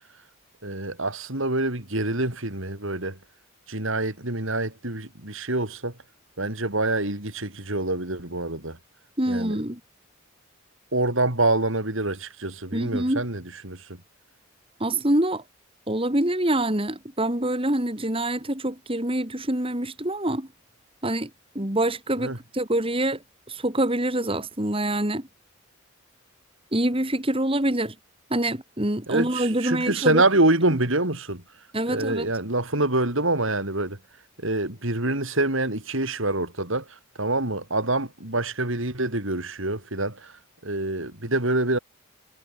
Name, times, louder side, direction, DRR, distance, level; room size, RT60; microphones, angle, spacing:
voice 1, 0.6-3.2 3.7-5.9 6.4-8.8 9.3-9.6 10.9-13.9 22.2-22.4 29.1-31.4 31.9-34.0 34.4-40.3 40.6-41.8, right 2 dB, 65° right, 4.4 m, -26 dB
voice 2, 9.2-9.8 12.7-13.2 14.8-15.4 15.9-20.5 21.0-21.3 21.5-23.2 23.5-25.3 26.7-27.9 28.3-30.2 31.7-32.3, right 1 dB, 25° right, 2.6 m, -25 dB
head